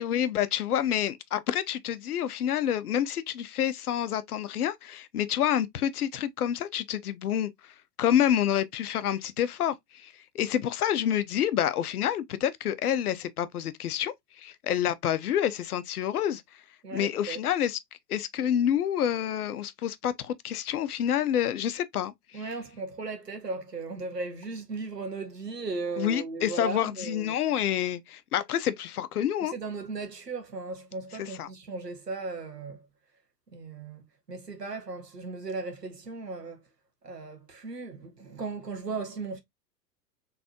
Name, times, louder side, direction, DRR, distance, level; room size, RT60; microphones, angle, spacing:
voice 1, 0.0-7.7 8.0-16.4 16.9-17.8 18.1-22.1 26.0-29.5 31.1-31.5, left 10 dB, 70° left, 0.7 m, -28 dB
voice 2, 16.8-17.4 22.3-27.3 29.4-32.8 33.5-34.0 34.3-36.6 37.0-39.4, right 3 dB, 90° right, 1.2 m, -36 dB
4.0 x 3.4 x 2.8 m
figure-of-eight pair, 100°, 47 cm